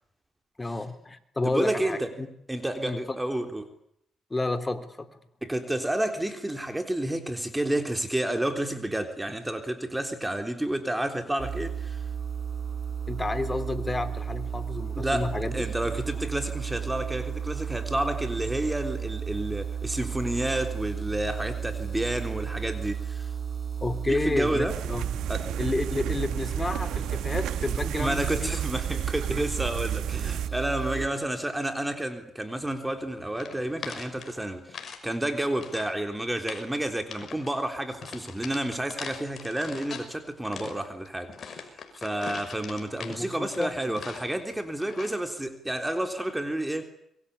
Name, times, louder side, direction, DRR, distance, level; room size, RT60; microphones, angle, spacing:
voice 1, 0.6-2.3 2.8-3.2 4.3-5.1 13.1-15.6 23.8-25.0 25.6-28.5 31.0-31.2 43.0-44.0, left 2 dB, 20° left, 9 dB, 3.5 m, -30 dB
voice 2, 1.4-2.1 2.5-3.7 5.4-12.0 14.9-23.3 24.1-24.8 25.3-25.5 28.0-46.8, right 1 dB, 10° right, 6 dB, 3.6 m, -30 dB
sound 1, 11.4-31.1, right 7 dB, 35° right, 6.7 m, -33 dB
sound 2, 24.7-30.5, right 11 dB, 85° right, 1.1 m, -33 dB
sound 3, 33.4-35.0 35.3-36.0 36.3-36.7 37.1-37.5 38.0-40.1 40.4-44.4 44.8-45.2, left 6 dB, 50° left, 6.1 m, -41 dB
27.0 x 23.5 x 8.5 m, 0.74 s
cardioid pair, 90°, 0 cm